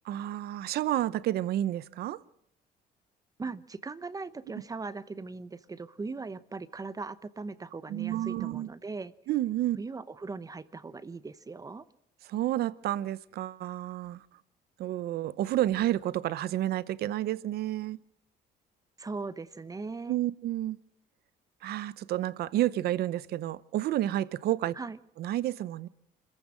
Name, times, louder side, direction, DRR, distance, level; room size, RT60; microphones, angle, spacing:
voice 1, 0.0-2.2 7.9-8.7 9.3-9.8 12.3-14.2 14.8-18.0 20.1-20.8 21.6-24.7 25.2-25.9, right 13 dB, 70° right, 0.8 m, -30 dB
voice 2, 3.4-9.1 9.8-11.9 19.0-20.2 24.8-25.0, right 4 dB, 20° right, 0.9 m, -39 dB
25.5 x 14.5 x 7.6 m
cardioid pair, 110°, 17 cm